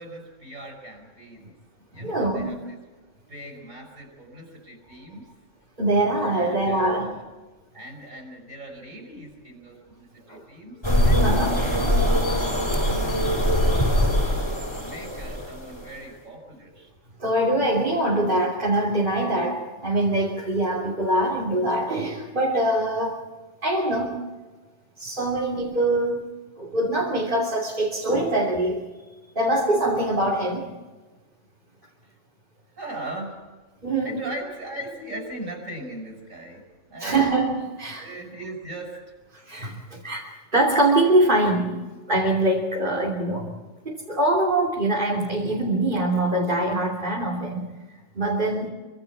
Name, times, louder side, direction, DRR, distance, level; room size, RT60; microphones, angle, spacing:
voice 1, 0.0-1.5 1.9-2.8 3.3-5.3 6.3-7.2 7.7-12.6 14.1-16.9 32.0-32.1 32.7-33.6 34.0-37.2 38.0-39.0, right 1 dB, 75° right, 1 dB, 6.5 m, -39 dB
voice 2, 1.9-2.6 5.8-7.2 10.3-10.4 11.2-11.5 13.5-13.8 17.2-23.2 23.6-24.2 25.0-26.3 26.6-28.9 29.3-30.8 33.8-34.2 37.0-38.1 39.3-43.5 43.8-47.7 48.1-48.7, right 1 dB, 40° right, -3 dB, 3.2 m, -23 dB
sound 1, 10.8-15.9, equal, 20° left, 6.1 m, -22 dB
26.5 x 25.0 x 4.8 m, 1.3 s
omnidirectional pair, 1.4 m